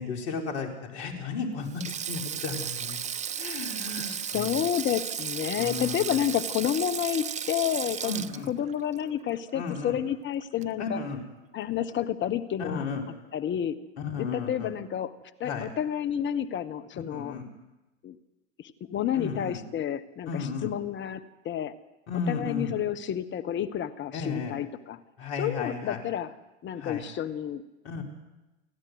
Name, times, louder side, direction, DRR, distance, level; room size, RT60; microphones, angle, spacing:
voice 1, 0.0-3.0 3.4-4.6 5.5-6.2 8.0-8.5 9.5-10.0 10.8-11.2 12.6-13.0 14.0-14.7 15.4-15.7 16.9-17.5 19.1-19.6 20.3-20.7 22.1-22.8 24.1-24.5 25.2-26.0 26.8-27.0 27.8-28.0, left 4 dB, 70° left, 2 dB, 4.5 m, -34 dB
Sink (filling or washing), 1.7-10.1 10.4-10.6 11.8-12.1, right 8 dB, 20° right, 0.6 m, -35 dB
voice 2, 4.0-8.2 8.5-11.0 11.5-12.8 13.3-13.8 14.2-15.1 15.4-17.4 18.0-18.2 18.6-20.3 20.6-21.8 22.3-25.0 25.4-26.3 26.6-27.6, left 10 dB, 30° left, 11 dB, 1.3 m, -30 dB
29.0 x 12.0 x 8.0 m, 1.0 s
hypercardioid pair, 90°, 35 cm